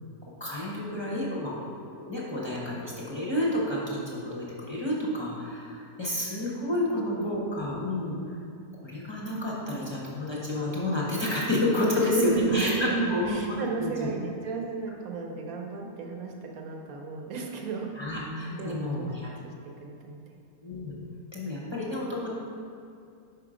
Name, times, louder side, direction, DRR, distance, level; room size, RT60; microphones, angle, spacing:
voice 1, 0.4-1.5 1.9-8.2 8.8-13.4 13.8-13.9 18.0-19.3 20.6-20.9 21.3-22.3, left 1 dB, 25° left, -6 dB, 0.7 m, -30 dB
voice 2, 6.9-7.3 12.0-19.2 19.8-20.2, right 4 dB, 65° right, 1 dB, 1.2 m, -33 dB
5.5 x 4.9 x 5.0 m, 2.5 s
omnidirectional pair, 1.7 m